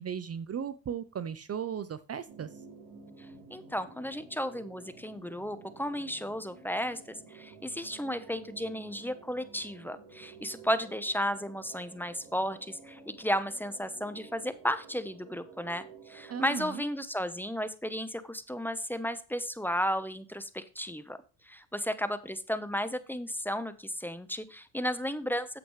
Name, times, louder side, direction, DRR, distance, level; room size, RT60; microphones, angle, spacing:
voice 1, 0.0-2.5 16.3-16.8, right 8 dB, 35° right, 15 dB, 0.7 m, -36 dB
sound 1, 2.3-16.5, right 5 dB, 65° right, 4.1 m, -52 dB
voice 2, 3.5-21.2 21.4-25.6, equal, 5° left, 12 dB, 1.0 m, -34 dB
9.7 x 7.8 x 3.2 m, 0.35 s
supercardioid pair, 80°, 44 cm